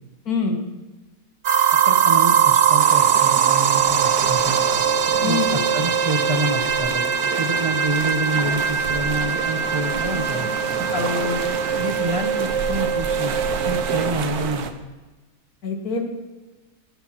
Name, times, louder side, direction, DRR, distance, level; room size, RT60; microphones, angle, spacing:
voice 1, 0.3-0.6 5.2-5.6 10.9-11.5 15.6-16.0, left 4 dB, 75° left, 4 dB, 2.1 m, -25 dB
sound 1, 1.4-14.1, right 8 dB, 55° right, 1.0 m, -21 dB
voice 2, 1.9-4.6 5.2-10.5 11.8-13.3 13.6-14.7, right 2 dB, 25° right, 6 dB, 0.8 m, -27 dB
sound 2, 2.8-14.7, right 6 dB, 80° right, 1.4 m, -31 dB
17.0 x 7.1 x 6.0 m, 1.2 s
omnidirectional pair, 1.6 m